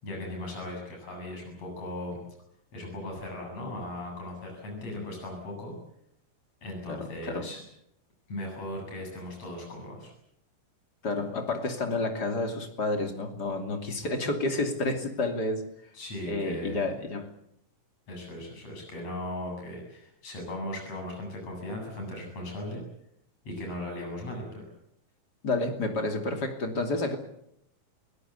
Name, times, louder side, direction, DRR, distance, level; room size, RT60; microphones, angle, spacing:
voice 1, 0.0-2.2 2.7-5.8 6.6-7.6 8.3-10.1 15.9-16.9 18.1-22.8 23.5-24.6, left 1 dB, 50° left, 1 dB, 9.2 m, -38 dB
voice 2, 6.9-7.5 11.0-15.7 16.3-17.3 25.4-27.2, left 2 dB, 30° left, 5 dB, 3.0 m, -30 dB
29.5 x 17.5 x 8.3 m, 0.76 s
omnidirectional pair, 3.9 m